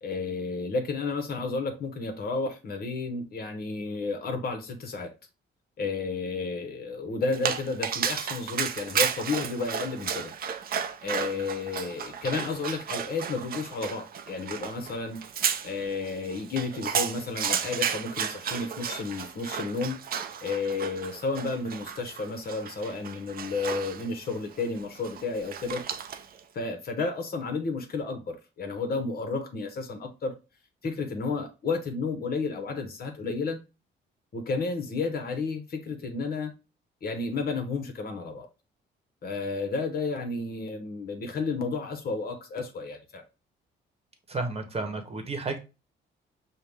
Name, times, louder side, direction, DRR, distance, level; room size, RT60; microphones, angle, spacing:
voice 1, 0.0-5.1 5.8-10.3 11.0-15.2 15.6-20.0 20.4-25.8 26.5-30.3 30.8-33.6 34.3-36.5 37.0-38.5 39.2-43.2, left 4 dB, 50° left, 0.8 m, -32 dB
Dog, 7.3-26.4, right 7 dB, 50° right, 0.5 m, -33 dB
voice 2, 44.3-45.6, right 3 dB, 30° right, 1.0 m, -32 dB
5.5 x 2.1 x 3.3 m
cardioid pair, 90°, 20 cm